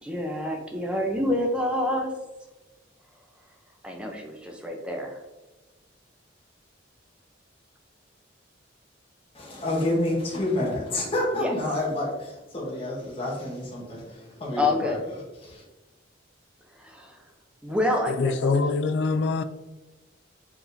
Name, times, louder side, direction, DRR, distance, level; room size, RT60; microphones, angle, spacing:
voice 1, 0.0-2.1 3.8-5.2 11.3-11.5 14.6-15.0 16.7-17.2 17.6-18.6, left 1 dB, 5° right, 0.5 m, -27 dB
voice 2, 9.3-15.0 15.4-15.6, left 1 dB, 30° left, 1.0 m, -29 dB
voice 3, 18.1-19.4, left 4 dB, 65° left, 0.3 m, -24 dB
4.7 x 3.5 x 2.6 m
head